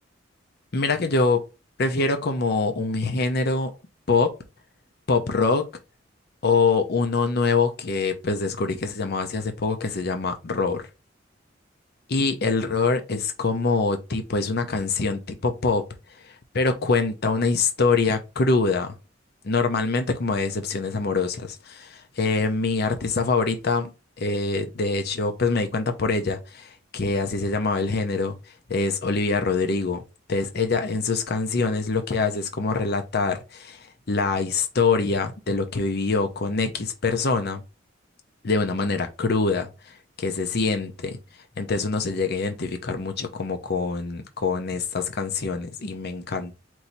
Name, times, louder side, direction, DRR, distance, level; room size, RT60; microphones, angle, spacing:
voice 1, 0.7-1.4 1.8-3.7 4.1-4.3 5.1-5.7 6.4-10.8 12.1-15.9 16.2-18.9 19.4-23.9 24.2-28.4 28.7-30.0 30.3-37.6 38.4-41.2 41.6-46.6, left 4 dB, 55° left, 0.7 m, -24 dB
4.6 x 2.7 x 4.0 m
head